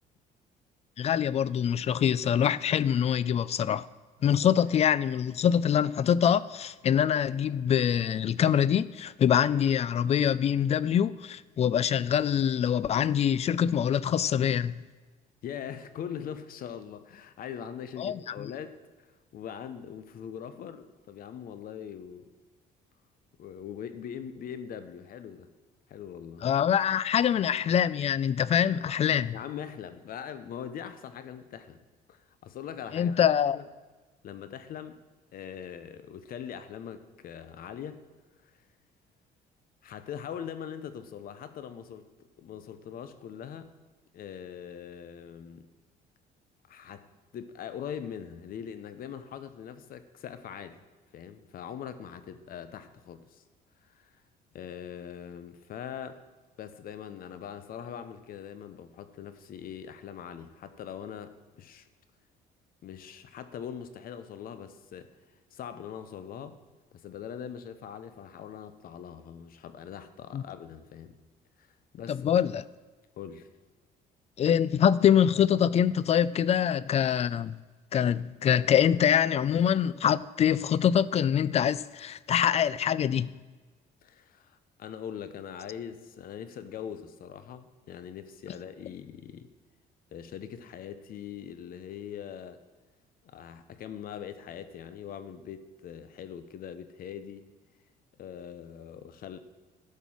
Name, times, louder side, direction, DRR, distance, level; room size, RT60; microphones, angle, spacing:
voice 1, 1.0-3.9 4.2-14.8 18.0-18.2 26.4-29.3 32.9-33.6 70.3-70.4 72.1-72.6 74.4-77.6 77.9-83.3, left 9 dB, 40° left, 0.4 m, -24 dB
voice 2, 15.4-22.3 23.4-25.5 25.9-26.5 29.3-31.8 32.1-33.2 33.5-33.7 34.2-35.0 35.3-38.0 38.4-38.6 39.8-42.0 42.4-43.7 44.1-45.7 46.7-50.8 51.1-53.4 53.8-54.2 54.5-56.2 56.6-61.9 62.8-65.1 65.5-66.6 66.9-71.1 71.6-71.7 71.9-72.3 73.2-73.5 84.0-89.5 90.1-92.6 93.2-97.5 98.2-99.4, left 8 dB, 60° left, 0.9 m, -42 dB
13.0 x 5.5 x 6.2 m
cardioid pair, 110°, 17 cm